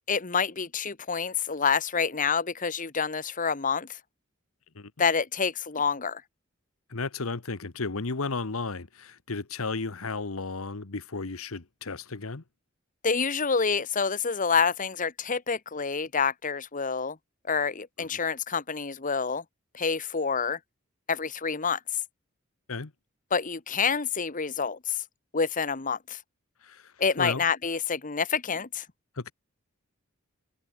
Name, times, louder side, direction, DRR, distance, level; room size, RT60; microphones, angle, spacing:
voice 1, 0.1-3.9 5.0-6.2 13.0-17.2 17.5-19.4 19.7-20.6 21.1-21.8 23.3-25.0 25.3-26.2 27.0-28.8, left 5 dB, 40° left, 1.2 m, -27 dB
voice 2, 6.9-12.4 18.0-18.2 22.7-22.9 26.6-26.9 27.2-27.4 29.2-29.3, left 3 dB, 85° left, 1.2 m, -34 dB
open air
head